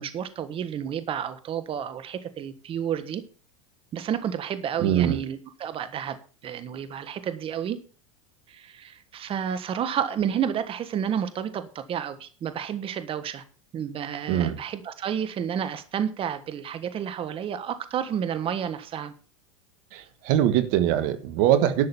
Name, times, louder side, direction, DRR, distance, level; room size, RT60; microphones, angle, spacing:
voice 1, 0.0-3.2 3.9-6.2 6.4-7.8 8.5-13.4 13.7-19.1, right 8 dB, 35° right, 1.4 m, -30 dB
voice 2, 4.8-5.2 14.3-14.6 19.9-21.9, right 11 dB, 60° right, 1.5 m, -22 dB
11.5 x 6.6 x 6.9 m
hypercardioid pair, 105°, 16 cm